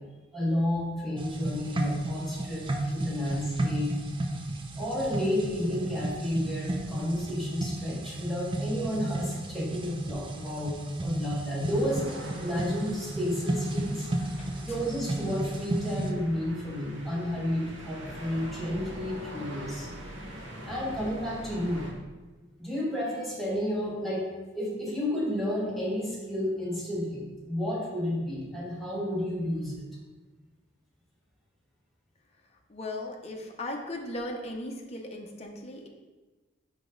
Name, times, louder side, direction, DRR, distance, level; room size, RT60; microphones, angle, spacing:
voice 1, 0.3-3.9 4.7-12.1 12.3-14.1 14.7-19.9 20.6-21.9 22.6-24.3 24.5-29.8, left 1 dB, ahead, -7 dB, 1.6 m, -31 dB
sound 1, 1.2-16.1, right 1 dB, 30° right, 0.5 m, -33 dB
sound 2, 11.7-21.9, equal, 85° right, 1.1 m, -43 dB
voice 2, 32.7-35.9, left 1 dB, 35° left, 1 dB, 0.8 m, -37 dB
5.2 x 5.0 x 3.9 m, 1.2 s
head